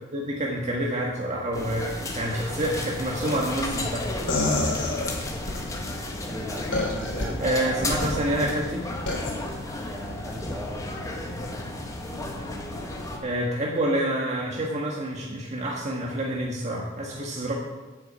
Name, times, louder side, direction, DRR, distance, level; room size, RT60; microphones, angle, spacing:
voice 1, 0.1-4.1 7.4-8.9 13.2-17.5, right 1 dB, 40° right, -3 dB, 1.4 m, -28 dB
sound 1, 1.5-13.2, left 1 dB, 20° left, 1.4 m, -33 dB
sound 2, 4.3-5.6 6.7-7.3 7.8-8.2 9.1-9.3, left 2 dB, 85° left, 3.4 m, -26 dB
voice 2, 4.5-5.0 6.1-7.9 9.9-11.1, equal, 10° right, -2 dB, 2.1 m, -38 dB
8.2 x 6.7 x 8.1 m, 1.2 s
head